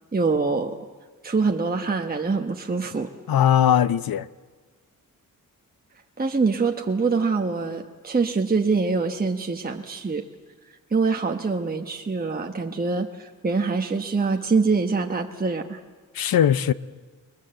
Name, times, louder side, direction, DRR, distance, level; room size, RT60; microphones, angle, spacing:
voice 1, 0.1-0.9 1.2-3.1 3.4-3.5 6.2-10.2 10.9-15.8, right 4 dB, 25° right, 1.1 m, -24 dB
voice 2, 3.3-4.3 16.1-16.7, left 10 dB, 85° left, 0.7 m, -19 dB
29.0 x 21.0 x 7.7 m
wide cardioid pair, 100°, 34 cm